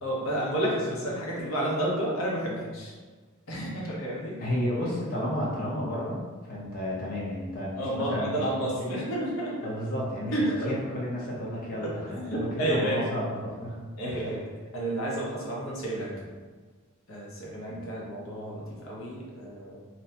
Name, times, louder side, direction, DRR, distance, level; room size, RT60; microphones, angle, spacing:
voice 1, 0.0-2.9 3.5-4.4 7.7-9.6 10.3-11.0 11.8-13.1 14.0-14.4 14.7-16.3 17.1-19.8, right 1 dB, 85° left, -4 dB, 0.7 m, -31 dB
voice 2, 4.4-8.4 8.9-9.0 9.6-14.3 17.7-17.8, equal, 45° left, -5 dB, 0.7 m, -32 dB
2.7 x 2.1 x 2.7 m, 1.4 s
head